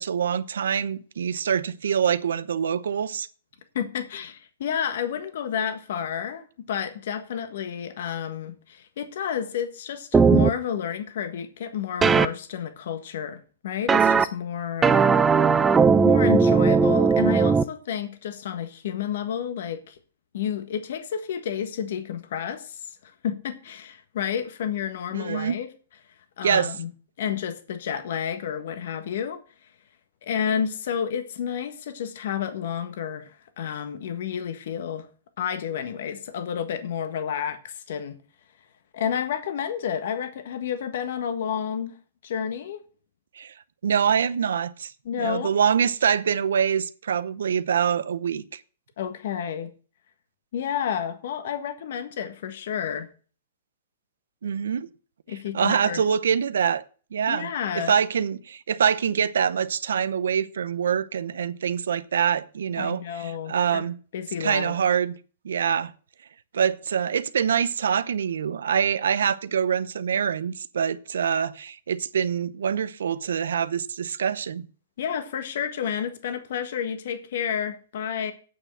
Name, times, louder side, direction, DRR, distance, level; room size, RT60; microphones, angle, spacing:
voice 1, 0.0-3.3 25.1-25.6 26.4-26.7 43.4-43.5 43.8-44.9 45.2-48.6 54.4-54.9 55.3-56.8 57.1-64.0 64.4-65.1 65.4-65.9 66.5-74.7, right 7 dB, 80° right, 0.7 m, -25 dB
voice 2, 3.7-15.6 16.0-20.0 20.3-25.7 26.4-26.9 27.2-29.4 30.2-35.1 35.4-38.2 38.9-41.9 42.2-42.8 45.0-45.5 49.0-49.7 50.5-53.1 55.3-56.0 57.3-57.9 62.8-63.8 64.1-64.7 75.0-78.3, left 8 dB, 65° left, 1.4 m, -30 dB
sound 1, 10.1-10.5 12.0-12.3 13.9-14.2 14.8-17.6, right 5 dB, 15° right, 0.5 m, -18 dB
8.7 x 6.5 x 7.7 m
hypercardioid pair, 130°, 0 cm